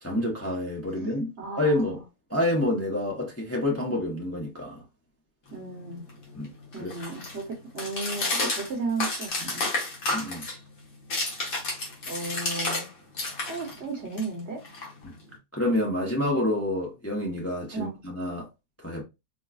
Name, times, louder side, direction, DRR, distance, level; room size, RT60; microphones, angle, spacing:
voice 1, 0.0-1.3 1.6-2.0 2.3-4.8 6.3-6.5 6.8-6.9 10.1-10.5 15.0-15.1 15.5-18.5 18.8-19.0, left 1 dB, 15° left, 0.7 m, -28 dB
voice 2, 1.4-2.0 5.5-6.0 6.7-9.7 12.1-12.9 13.2-14.6 17.7-17.9, right 3 dB, 50° right, 1.2 m, -34 dB
sound 1, 5.5-12.9 13.1-15.3, left 2 dB, 70° left, 1.7 m, -32 dB
4.6 x 2.3 x 2.4 m
omnidirectional pair, 1.5 m